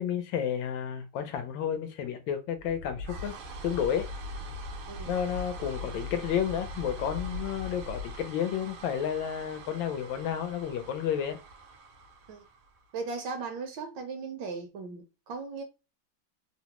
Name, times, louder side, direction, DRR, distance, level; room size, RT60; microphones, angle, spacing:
voice 1, 0.0-3.4 3.6-4.1 5.1-11.4, left 9 dB, 75° left, 1.3 m, -31 dB
sound 1, 2.6-13.0, left 1 dB, 90° right, 1.6 m, -41 dB
voice 2, 12.9-15.6, right 4 dB, 70° right, 1.1 m, -37 dB
3.7 x 2.0 x 2.8 m
omnidirectional pair, 2.2 m